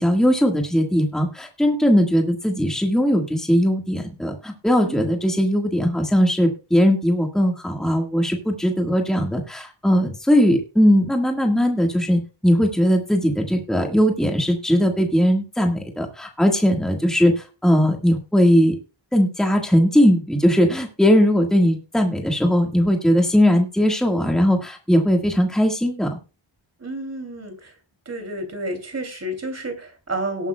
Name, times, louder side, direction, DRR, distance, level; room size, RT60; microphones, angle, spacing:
voice 1, 0.0-17.3 17.6-18.8 19.1-26.1, equal, ahead, 2 dB, 1.6 m, -19 dB
voice 2, 4.8-5.2 26.8-27.7 28.1-30.5, right 1 dB, 35° right, 6 dB, 2.9 m, -30 dB
18.5 x 8.8 x 2.3 m, 0.32 s
wide cardioid pair, 155°, 45 cm